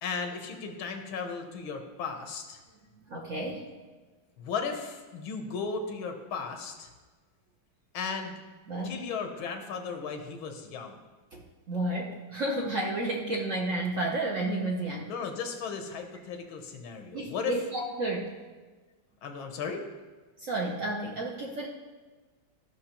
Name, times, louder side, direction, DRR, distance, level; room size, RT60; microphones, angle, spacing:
voice 1, 0.0-2.6 4.4-6.9 7.9-8.4 8.8-11.0 15.1-17.5 19.2-19.8, left 5 dB, 90° left, 5 dB, 1.8 m, -35 dB
voice 2, 3.0-3.7 8.7-9.0 11.3-15.1 17.1-18.3 20.4-21.7, right 2 dB, 60° right, 0 dB, 0.9 m, -32 dB
14.0 x 6.1 x 2.9 m, 1.3 s
omnidirectional pair, 2.2 m